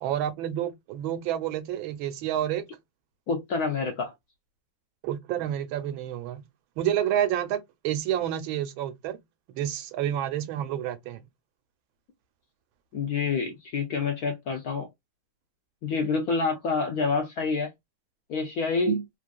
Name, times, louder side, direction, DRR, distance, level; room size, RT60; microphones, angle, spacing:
voice 1, 0.0-2.6 5.0-6.5 6.8-9.2 9.5-11.2 18.9-19.0, right 11 dB, 85° right, 1.4 m, -29 dB
voice 2, 3.3-4.1 12.9-14.9 15.8-17.7 18.3-19.0, left 4 dB, 70° left, 0.9 m, -27 dB
3.3 x 2.5 x 2.2 m
omnidirectional pair, 2.2 m